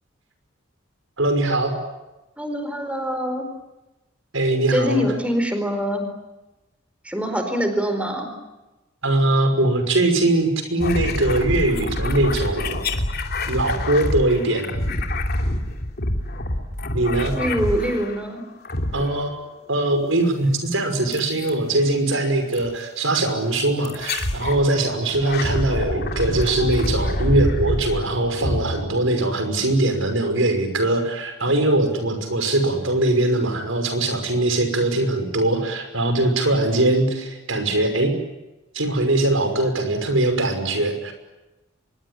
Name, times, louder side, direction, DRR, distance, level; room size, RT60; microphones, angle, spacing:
voice 1, 1.2-1.7 4.3-5.0 9.0-12.8 13.5-14.7 16.9-17.4 18.9-19.3 19.7-38.1 38.7-41.1, right 2 dB, 80° right, 7 dB, 5.8 m, -21 dB
voice 2, 2.4-3.5 4.7-6.1 7.0-8.3 17.3-18.4, equal, 5° right, 6 dB, 4.6 m, -24 dB
sound 1, 10.8-18.2 18.6-19.4 21.1-21.5 22.5-22.7 23.8-24.6 25.1-29.4, left 1 dB, 50° left, 3.0 m, -26 dB
25.5 x 22.5 x 9.9 m, 1.0 s
head